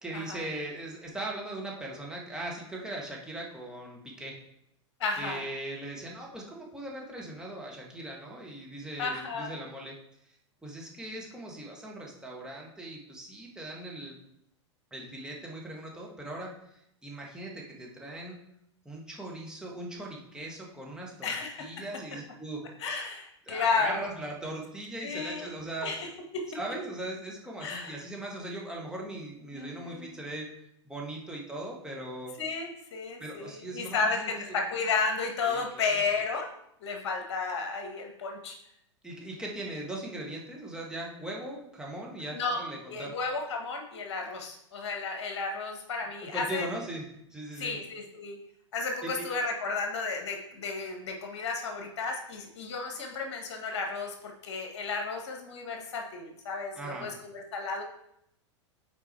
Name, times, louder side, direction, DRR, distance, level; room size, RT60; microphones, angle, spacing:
voice 1, 0.0-4.4 5.2-10.0 10.6-14.2 14.9-18.4 18.9-21.3 21.6-22.6 23.5-25.9 26.5-30.5 30.9-32.3 33.2-34.6 35.4-36.1 39.0-43.1 46.2-47.0 47.3-47.8 49.0-49.2 56.8-57.2, right 1 dB, 5° right, -3 dB, 1.8 m, -39 dB
voice 2, 5.0-5.4 9.0-9.5 21.2-21.6 22.8-24.1 25.0-25.5 25.8-26.1 27.6-28.0 29.5-30.1 32.4-36.5 36.8-38.6 42.3-42.6 42.9-46.7 47.6-48.4 48.7-57.8, left 4 dB, 65° left, 3 dB, 1.6 m, -33 dB
7.2 x 4.6 x 4.5 m, 0.76 s
hypercardioid pair, 100°, 15 cm